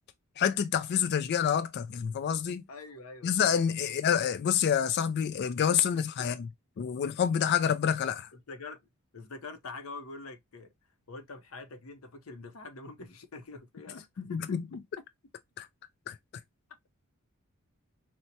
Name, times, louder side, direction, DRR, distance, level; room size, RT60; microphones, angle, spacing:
voice 1, 0.4-2.6 3.2-6.5 6.8-8.3 14.2-14.6 15.6-15.7 16.1-16.2, left 8 dB, 50° left, 0.3 m, -28 dB
voice 2, 2.7-3.5 3.8-4.0 5.7-6.3 8.3-8.8 9.1-10.7 11.1-14.6, left 3 dB, 75° left, 0.7 m, -45 dB
4.4 x 2.1 x 2.6 m
head